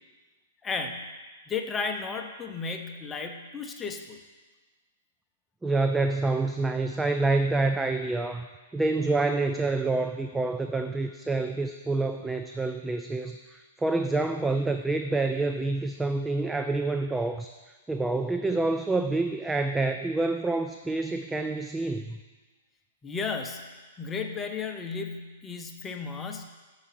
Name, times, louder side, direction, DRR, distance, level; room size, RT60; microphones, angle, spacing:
voice 1, 0.6-1.1 1.5-4.2 23.0-26.4, left 5 dB, 20° left, 5 dB, 0.7 m, -34 dB
voice 2, 5.6-8.5 8.7-22.2, right 3 dB, 10° right, 7 dB, 0.3 m, -27 dB
6.7 x 4.9 x 5.8 m, 1.3 s
hypercardioid pair, 125°, 0 cm